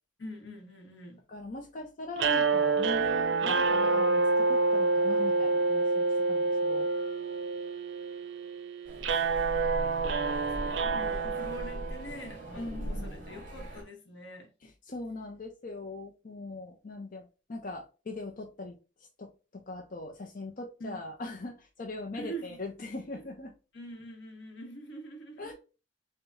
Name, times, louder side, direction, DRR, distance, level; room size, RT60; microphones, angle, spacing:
voice 1, 0.2-1.2 10.5-14.7 20.8-21.0 22.1-22.6 23.1-23.2 23.7-25.5, right 1 dB, 80° left, 1.1 m, -44 dB
voice 2, 1.3-6.9 12.6-13.1 14.9-18.8 19.2-23.5 25.4-25.5, left 2 dB, 50° left, 0.6 m, -41 dB
sound 1, 2.2-12.4, right 3 dB, 85° right, 0.5 m, -28 dB
sound 2, 8.8-13.8, equal, 50° right, 1.2 m, -40 dB
4.6 x 2.2 x 2.5 m
head